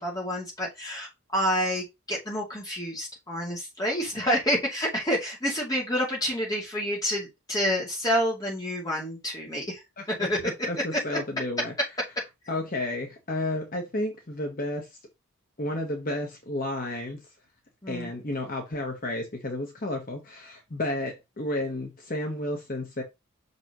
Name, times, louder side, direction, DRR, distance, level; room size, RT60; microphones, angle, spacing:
voice 1, 0.0-9.8 10.2-10.4 10.9-11.2 17.8-18.1, equal, 15° left, 2.5 m, -28 dB
voice 2, 10.0-11.7 12.5-14.9 15.6-17.2 17.9-23.0, left 1 dB, 40° left, 1.1 m, -32 dB
6.0 x 5.5 x 3.0 m
head